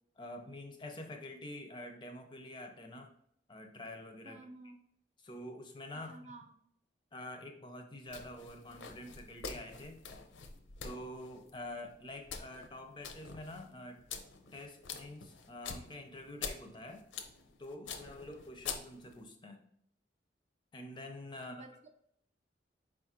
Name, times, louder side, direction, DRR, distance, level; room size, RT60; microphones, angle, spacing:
voice 1, 0.2-3.1 3.5-4.4 5.2-6.2 7.1-10.0 10.8-14.0 14.5-17.0 17.6-19.6 20.7-21.6, left 1 dB, 25° left, 4 dB, 0.5 m, -47 dB
voice 2, 4.2-4.8 5.9-6.5 21.3-21.7, right 2 dB, 40° right, 4 dB, 0.5 m, -52 dB
sound 1, 8.1-19.2, left 5 dB, 85° left, 0.6 m, -47 dB
4.8 x 2.4 x 4.2 m, 0.68 s
head